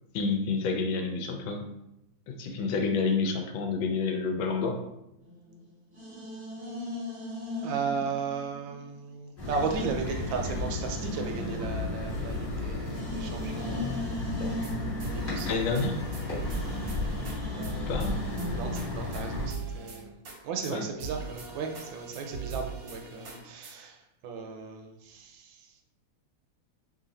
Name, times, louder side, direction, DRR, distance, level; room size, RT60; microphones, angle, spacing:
voice 1, 0.1-1.6 2.3-4.8 15.5-16.0 17.9-18.2 20.7-20.8, left 4 dB, 75° left, 4 dB, 1.3 m, -29 dB
sound 1, 5.2-9.0 9.4-18.8, equal, 20° right, 0.9 m, -39 dB
voice 2, 7.6-14.1 15.1-15.6 17.5-18.0 18.5-20.2 20.4-25.7, right 5 dB, 75° right, 3 dB, 1.3 m, -36 dB
sound 2, 9.4-19.5, left 2 dB, 40° left, 0.8 m, -34 dB
sound 3, 14.4-14.7 15.0-17.4 17.6-17.7 18.0-20.4 20.6-20.7 21.0-23.7, right 5 dB, 60° right, 1.0 m, -40 dB
3.1 x 2.8 x 3.9 m, 0.85 s
omnidirectional pair, 2.3 m